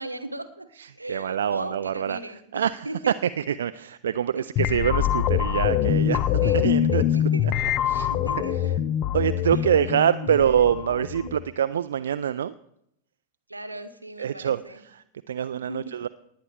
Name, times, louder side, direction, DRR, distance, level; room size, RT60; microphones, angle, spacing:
voice 1, 0.0-0.7 0.9-3.1 4.3-4.4 6.4-7.5 8.1-8.6 9.4-9.8 10.3-10.4 11.2-11.3 13.5-14.8 15.7-15.9, right 2 dB, 85° right, 11 dB, 0.9 m, -37 dB
voice 2, 0.8-2.2 2.5-7.0 7.4-7.5 7.9-8.1 8.5-8.7 9.1-12.5 14.2-16.1, right 9 dB, 65° right, 13 dB, 0.3 m, -25 dB
sound 1, 4.6-11.4, left 10 dB, 40° left, 0.6 m, -24 dB
19.0 x 9.8 x 3.5 m, 0.76 s
figure-of-eight pair, 90°, 0 cm